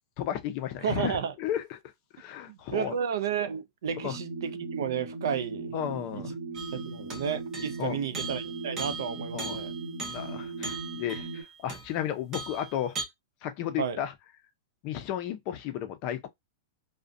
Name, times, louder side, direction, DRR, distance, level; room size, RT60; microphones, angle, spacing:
voice 1, 0.2-1.8 2.1-3.0 4.0-4.2 5.7-6.3 7.8-8.0 9.3-9.6 10.0-13.0 13.4-14.1 14.8-16.3, left 10 dB, 35° left, 0.4 m, -33 dB
voice 2, 0.8-1.3 2.5-5.7 6.7-9.7 13.8-14.0, right 8 dB, 80° right, 0.5 m, -32 dB
sound 1, 3.9-11.4, right 3 dB, 40° right, 1.0 m, -38 dB
sound 2, 6.5-7.9 8.1-12.0 12.3-13.0, right 3 dB, 20° right, 0.6 m, -39 dB
2.4 x 2.1 x 2.5 m
supercardioid pair, 165°, 2 cm